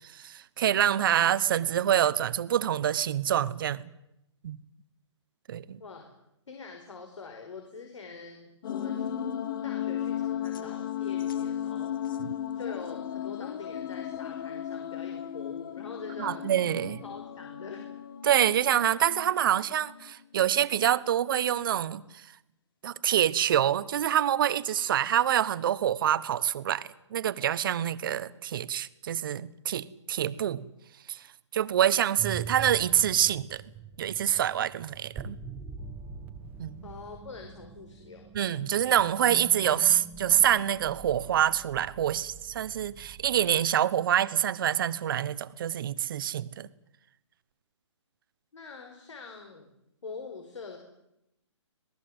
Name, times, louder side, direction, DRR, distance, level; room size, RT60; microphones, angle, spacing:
voice 1, 0.0-3.9 4.4-4.6 5.5-5.8 12.2-12.3 16.2-17.0 18.2-22.0 22.8-30.6 31.1-31.2 31.5-33.6 34.0-35.4 36.6-36.9 38.3-46.7, right 10 dB, 45° right, 15 dB, 1.2 m, -26 dB
voice 2, 6.5-9.1 9.6-12.2 12.5-16.5 17.0-17.9 36.8-38.3 48.5-49.7 50.0-50.8, left 4 dB, 80° left, 3 dB, 5.1 m, -44 dB
sound 1, 8.6-20.1, left 10 dB, 45° left, 1.5 m, -35 dB
sound 2, 32.2-43.6, right 5 dB, 10° right, 1.4 m, -44 dB
26.5 x 19.0 x 7.9 m, 0.84 s
hypercardioid pair, 150°, 16 cm